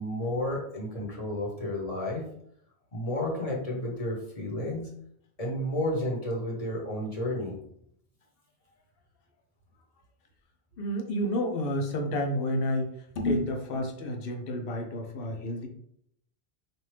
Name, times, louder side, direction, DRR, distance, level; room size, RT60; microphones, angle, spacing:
voice 1, 0.0-2.2 2.9-4.9 5.4-7.6, left 1 dB, 35° left, -2 dB, 1.1 m, -31 dB
voice 2, 10.8-12.9 13.2-15.7, left 1 dB, 65° left, 3 dB, 0.9 m, -30 dB
4.3 x 2.6 x 3.2 m, 0.71 s
omnidirectional pair, 1.1 m